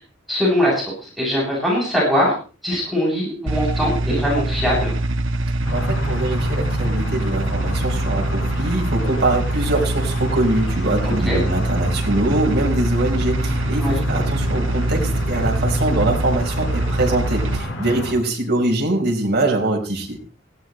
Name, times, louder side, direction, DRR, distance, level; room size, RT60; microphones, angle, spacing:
voice 1, 0.3-2.3 2.6-4.9 11.0-11.4 13.8-14.0, equal, ahead, -6 dB, 7.7 m, -21 dB
sound 1, 3.5-17.6, right 1 dB, 85° right, 1.2 m, -23 dB
sound 2, 5.7-18.1, left 1 dB, 80° left, 5.0 m, -30 dB
voice 2, 5.7-20.2, right 2 dB, 55° right, 0 dB, 4.5 m, -23 dB
18.5 x 16.5 x 3.2 m, 0.37 s
head